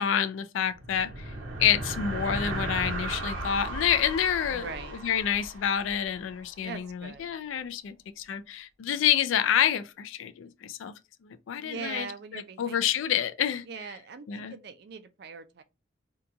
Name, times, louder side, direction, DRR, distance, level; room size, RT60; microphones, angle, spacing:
voice 1, 0.0-1.3 1.6-4.7 5.0-10.9 11.2-12.1 12.3-13.6 14.3-14.5, left 9 dB, 85° left, 0.3 m, -28 dB
sound 1, 0.6-6.4, right 2 dB, 85° right, 0.9 m, -36 dB
voice 2, 4.5-5.0 6.6-7.4 11.6-12.8 13.7-15.6, right 5 dB, 55° right, 0.4 m, -41 dB
2.8 x 2.2 x 3.7 m
head